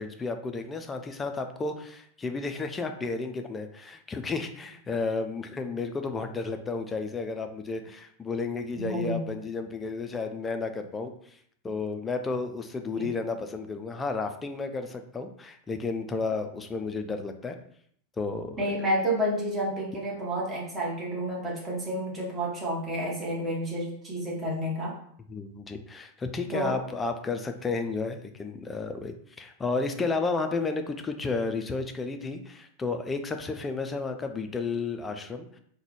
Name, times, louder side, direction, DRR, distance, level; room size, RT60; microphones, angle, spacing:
voice 1, 0.0-11.4 11.6-17.6 18.2-18.9 25.3-35.5, left 4 dB, 15° left, 6 dB, 0.4 m, -32 dB
voice 2, 8.8-9.2 13.0-13.1 18.6-25.0 26.5-26.8, right 1 dB, 15° right, -4 dB, 1.2 m, -30 dB
3.8 x 2.2 x 3.1 m, 0.64 s
figure-of-eight pair, 90°, 0 cm